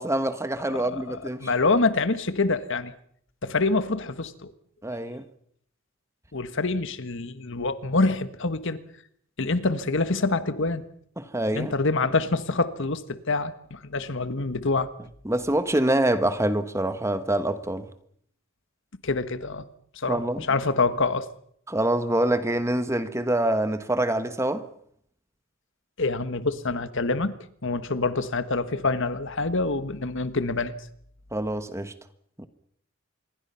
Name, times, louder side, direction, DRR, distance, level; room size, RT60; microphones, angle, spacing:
voice 1, 0.0-1.5 4.8-5.2 11.2-11.7 15.2-17.9 20.1-20.4 21.7-24.7 31.3-31.9 32.4-32.5, right 1 dB, 15° right, 1.2 m, -25 dB
voice 2, 0.7-2.9 3.4-4.5 6.3-8.8 9.4-10.9 11.5-14.9 19.0-19.6 19.9-21.3 26.0-27.3 27.6-30.7, left 3 dB, 60° left, 1.5 m, -26 dB
26.5 x 22.5 x 5.7 m
head